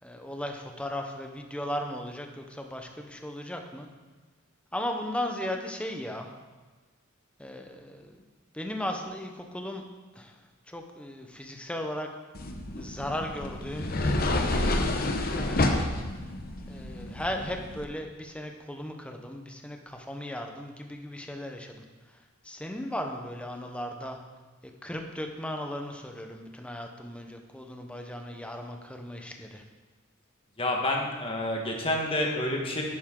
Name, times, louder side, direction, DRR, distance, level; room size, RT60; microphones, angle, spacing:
voice 1, 0.0-3.9 4.7-6.3 7.4-8.2 8.5-9.8 10.1-10.4 10.7-12.1 12.8-13.9 14.4-15.9 16.7-24.2 24.8-29.6, left 1 dB, 5° left, 3 dB, 0.8 m, -37 dB
sound 1, 12.3-17.8, left 2 dB, 45° left, 0.9 m, -29 dB
voice 2, 30.6-32.8, left 1 dB, 25° left, 0 dB, 1.5 m, -28 dB
11.0 x 9.3 x 3.8 m, 1.3 s
head